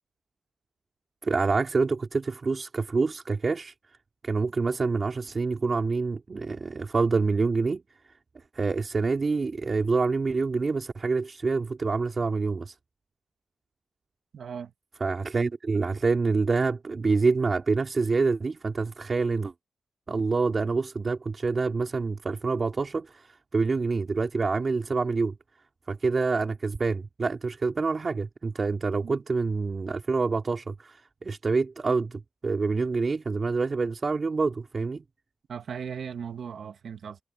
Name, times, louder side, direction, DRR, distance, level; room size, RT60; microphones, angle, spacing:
voice 1, 1.2-3.7 4.2-7.8 8.5-12.7 15.0-19.5 20.1-25.3 25.9-35.0, right 4 dB, 40° right, 3.0 m, -27 dB
voice 2, 14.3-14.7 29.0-29.2 35.5-37.2, right 7 dB, 80° right, 2.0 m, -37 dB
wide cardioid pair, 100°, 0 cm